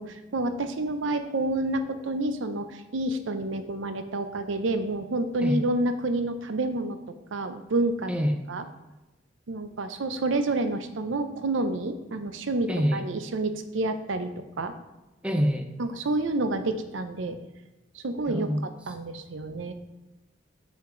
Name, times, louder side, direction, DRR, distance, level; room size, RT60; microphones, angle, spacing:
voice 1, 0.0-7.0 7.3-8.1 8.5-8.6 9.5-14.7 15.8-17.4 17.9-18.5 18.9-19.7, right 2 dB, 80° right, 9 dB, 0.6 m, -29 dB
voice 2, 8.1-8.4 12.7-13.1 15.2-15.7 18.3-18.6, equal, 5° right, 5 dB, 0.5 m, -26 dB
6.6 x 5.6 x 3.8 m, 1.0 s
head